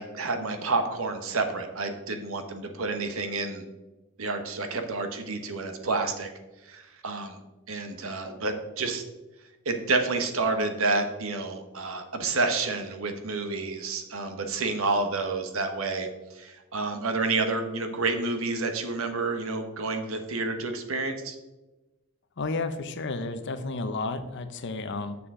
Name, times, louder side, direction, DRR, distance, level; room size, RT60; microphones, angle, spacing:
voice 1, 0.0-3.6 4.2-6.3 6.7-7.4 7.7-9.0 9.6-21.4, right 3 dB, 70° right, 6 dB, 1.0 m, -29 dB
voice 2, 22.4-25.2, left 3 dB, 55° left, 9 dB, 0.7 m, -32 dB
7.0 x 6.8 x 3.7 m, 1.1 s
head